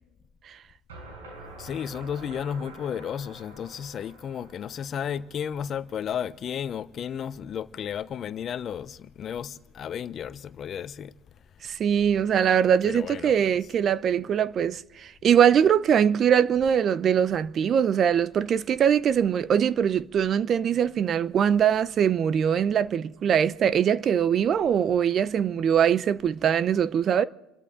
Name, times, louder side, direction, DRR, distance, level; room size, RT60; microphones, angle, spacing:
sound 1, 0.9-5.8, right 2 dB, 90° right, 6.0 m, -47 dB
voice 1, 1.6-11.1 12.8-13.3, left 8 dB, 45° left, 0.8 m, -33 dB
voice 2, 11.6-27.2, right 8 dB, 45° right, 0.7 m, -22 dB
29.5 x 13.0 x 3.7 m
hypercardioid pair, 80°, 0 cm